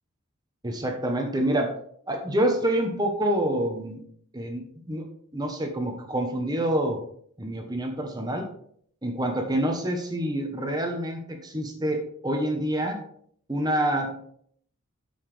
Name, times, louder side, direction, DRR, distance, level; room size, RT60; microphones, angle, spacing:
voice 1, 0.6-1.7 2.1-4.0 4.3-5.1 5.3-7.0 7.4-8.5 9.0-13.0 13.5-14.1, right 1 dB, 20° right, 4 dB, 1.0 m, -27 dB
9.2 x 7.0 x 3.3 m, 0.64 s
head